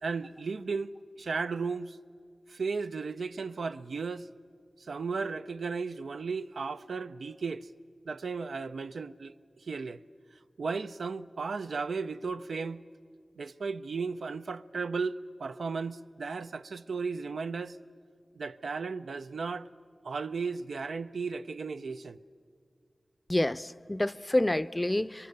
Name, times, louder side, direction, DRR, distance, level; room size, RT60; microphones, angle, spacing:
voice 1, 0.0-2.0 2.5-4.3 4.8-7.7 8.1-10.0 10.6-12.8 13.4-17.8 18.4-19.7 20.0-22.2, right 4 dB, 90° right, 0.5 m, -35 dB
voice 2, 23.3-25.3, left 1 dB, 20° left, 0.5 m, -28 dB
26.0 x 23.0 x 6.7 m
cardioid pair, 50°, 0 cm